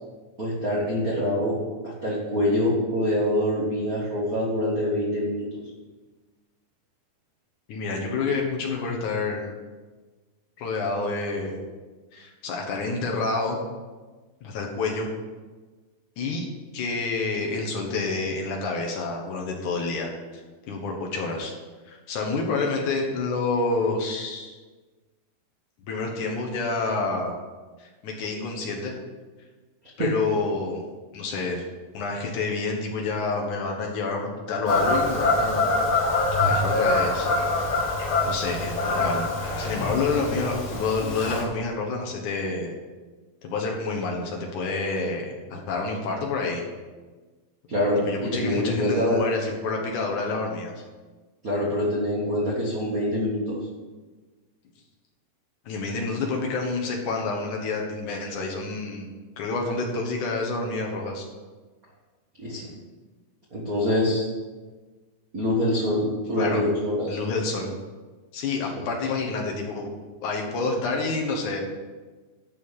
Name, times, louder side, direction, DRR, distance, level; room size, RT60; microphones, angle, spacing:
voice 1, 0.4-1.6 1.8-5.4 30.0-30.1 47.7-49.2 51.4-53.6 62.4-62.7 63.5-64.3 65.3-67.2 68.7-68.8, left 1 dB, 60° right, -5 dB, 0.9 m, -25 dB
voice 2, 7.7-9.5 10.6-11.6 12.1-13.6 14.4-15.1 16.2-20.4 20.7-21.5 21.9-24.6 25.9-27.3 27.8-28.9 30.0-30.8 31.1-31.7 31.9-35.9 36.4-37.3 37.6-37.7 38.2-39.2 39.6-42.7 43.4-46.6 48.0-50.8 55.7-59.1 59.4-61.3 66.4-66.6 67.1-67.7 68.3-69.9 70.2-71.6, left 3 dB, 65° left, 0 dB, 2.4 m, -28 dB
Fowl / Bird vocalization bird call bird song, 34.7-41.4, left 2 dB, 90° left, 4.3 m, -24 dB
12.0 x 4.3 x 7.2 m, 1.3 s
omnidirectional pair, 4.2 m